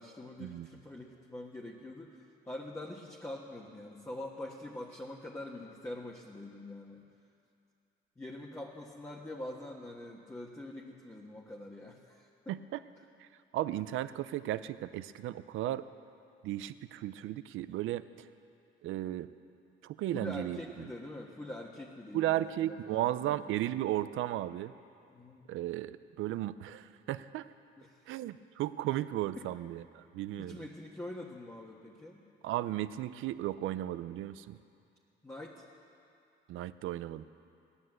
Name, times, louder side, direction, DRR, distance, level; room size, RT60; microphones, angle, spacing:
voice 1, 0.0-7.0 8.2-12.6 20.1-23.7 25.1-25.5 26.8-26.9 27.8-28.2 29.4-29.5 30.4-32.2 35.2-35.7, left 1 dB, 15° left, -3 dB, 1.5 m, -45 dB
voice 2, 13.5-15.8 16.4-18.0 18.8-19.3 19.8-20.6 22.1-24.7 25.5-27.5 28.1-30.6 32.4-34.6 36.5-37.2, right 14 dB, 85° right, 14 dB, 0.5 m, -35 dB
16.5 x 11.5 x 7.7 m, 2.5 s
cardioid pair, 90°, 20 cm